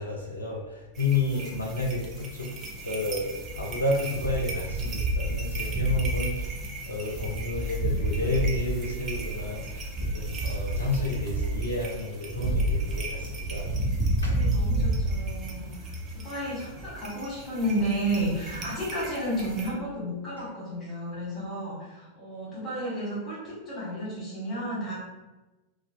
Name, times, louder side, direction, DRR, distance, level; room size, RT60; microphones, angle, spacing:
voice 1, 0.0-2.5 2.8-3.3 3.5-6.6 6.9-13.7 14.2-14.4, left 2 dB, 80° left, -1 dB, 0.4 m, -31 dB
sound 1, 1.0-19.7, right 1 dB, 30° right, 0.4 m, -31 dB
voice 2, 14.2-24.9, right 1 dB, 30° left, -8 dB, 1.1 m, -32 dB
2.4 x 2.2 x 2.3 m, 1.1 s
figure-of-eight pair, 90°, 0 cm